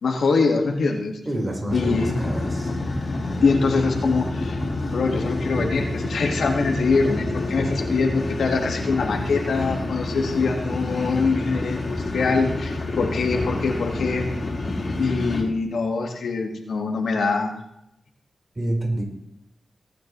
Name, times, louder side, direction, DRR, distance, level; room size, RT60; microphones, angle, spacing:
voice 1, 0.0-1.2 1.7-2.2 3.4-4.6 4.9-14.3 14.9-17.5, left 4 dB, 90° left, 2 dB, 1.5 m, -23 dB
voice 2, 1.2-2.8 18.5-19.0, right 1 dB, 35° right, 0 dB, 4.1 m, -27 dB
sound 1, 1.7-15.4, left 2 dB, 55° left, 2.7 m, -28 dB
18.0 x 9.6 x 3.1 m, 0.81 s
cardioid pair, 50°, 0 cm